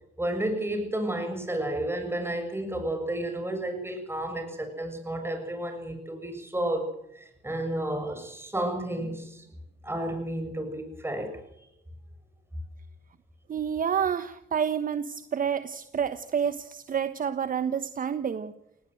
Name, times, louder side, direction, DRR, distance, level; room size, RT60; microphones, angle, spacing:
voice 1, 0.2-6.9 7.1-9.4 9.8-11.4, right 1 dB, 10° right, 6 dB, 6.8 m, -31 dB
voice 2, 13.5-18.5, right 7 dB, 45° right, 10 dB, 1.2 m, -29 dB
18.5 x 17.5 x 7.9 m, 0.78 s
cardioid pair, 90°, 20 cm